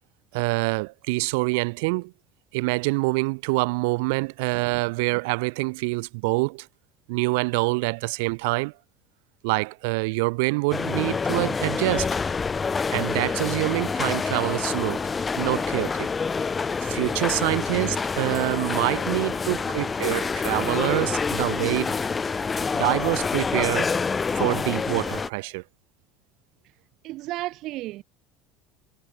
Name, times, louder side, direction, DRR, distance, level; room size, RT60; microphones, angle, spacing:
voice 1, 0.3-2.1 2.5-6.7 7.1-8.7 9.4-12.1 12.9-15.0 15.4-16.1 16.8-22.0 22.7-24.0 24.3-25.6, right 28 dB, 85° right, 0.8 m, -26 dB
sound 1, 10.7-25.3, left 5 dB, 15° left, 0.4 m, -27 dB
voice 2, 19.2-20.3 27.0-28.0, right 17 dB, 50° right, 0.6 m, -36 dB
cardioid pair, 165°, 0 cm